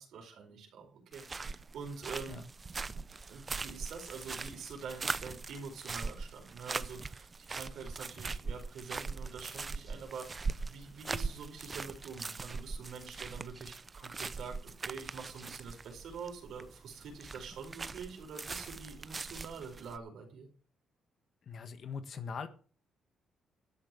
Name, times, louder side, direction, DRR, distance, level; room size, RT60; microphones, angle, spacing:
voice 1, 0.0-2.4 3.3-20.5, right 5 dB, 75° right, 3 dB, 4.8 m, -46 dB
sound 1, 1.1-20.0, right 4 dB, 30° right, 0.6 m, -41 dB
voice 2, 21.5-22.5, left 5 dB, 55° left, 10 dB, 1.6 m, -41 dB
12.5 x 6.8 x 7.7 m, 0.40 s
cardioid pair, 90°, 0 cm